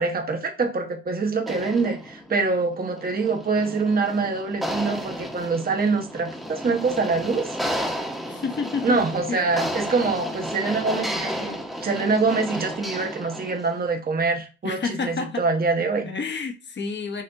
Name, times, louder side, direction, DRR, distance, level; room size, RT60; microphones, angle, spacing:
voice 1, 0.0-8.0 8.8-16.1, right 4 dB, 30° right, 1.1 m, -25 dB
sound 1, 1.4-13.7, equal, ahead, 1.1 m, -32 dB
voice 2, 8.2-9.0 9.3-9.5 14.6-15.5 16.0-17.2, left 5 dB, 35° left, 1.1 m, -29 dB
6.6 x 2.6 x 2.6 m
cardioid pair, 90°, 30 cm